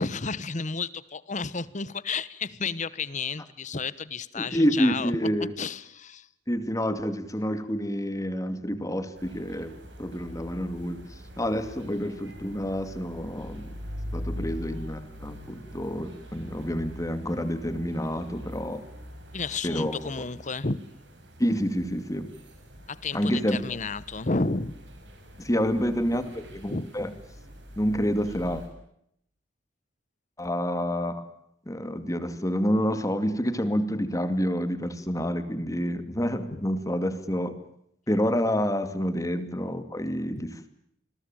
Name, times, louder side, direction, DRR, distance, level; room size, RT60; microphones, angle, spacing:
voice 1, 0.0-5.1 5.6-6.3 14.3-14.5 19.3-20.8 22.9-24.7 26.7-26.9 36.5-36.6 40.3-40.4, left 4 dB, 45° left, 17 dB, 1.1 m, -32 dB
voice 2, 4.4-5.5 6.5-11.0 11.4-13.8 14.1-18.8 19.6-20.0 21.4-22.3 23.1-23.6 25.4-27.1 27.8-28.6 30.4-31.3 31.7-37.5 38.1-40.7, equal, 20° left, 10 dB, 2.4 m, -28 dB
sound 1, 9.1-28.7, equal, 75° right, 7.3 m, -43 dB
28.0 x 21.5 x 9.1 m, 0.74 s
head